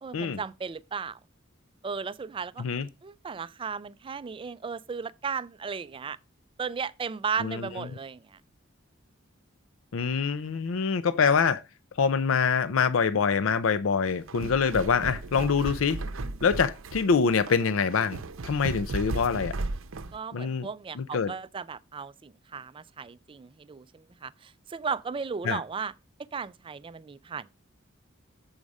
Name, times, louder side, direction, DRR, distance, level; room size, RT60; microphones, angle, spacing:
voice 1, 0.0-1.2 1.8-2.6 3.0-6.2 6.6-8.4 20.1-25.9 26.3-27.5, right 5 dB, 25° right, 0.3 m, -35 dB
voice 2, 9.9-11.6 12.0-16.0 16.4-19.6 20.3-20.7 21.0-21.3 25.4-25.6, left 5 dB, 80° left, 0.5 m, -25 dB
sound 1, 14.1-20.2, right 2 dB, 85° right, 0.6 m, -35 dB
7.2 x 4.9 x 5.3 m
head